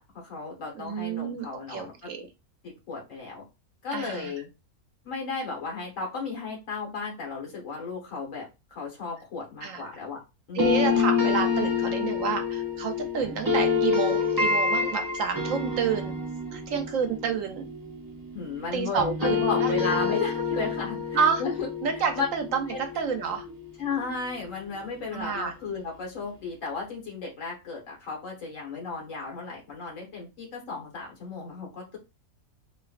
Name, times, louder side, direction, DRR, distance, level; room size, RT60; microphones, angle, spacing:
voice 1, 0.0-1.9 2.2-2.3 2.9-3.4 3.8-4.5 5.0-8.4 8.7-10.2 10.5-10.8 18.3-21.7 22.1-22.3 22.7-22.8 23.8-32.0, left 4 dB, 60° left, -1 dB, 1.7 m, -34 dB
voice 2, 0.7-2.3 3.9-4.3 9.6-9.8 10.5-16.2 16.5-17.7 18.7-19.7 21.1-21.4 21.8-23.5 25.1-25.5, right 6 dB, 70° right, 6 dB, 0.9 m, -29 dB
sound 1, 10.6-18.7 19.0-23.9, left 5 dB, 25° right, 0.4 m, -28 dB
4.1 x 2.5 x 2.4 m, 0.26 s
omnidirectional pair, 1.5 m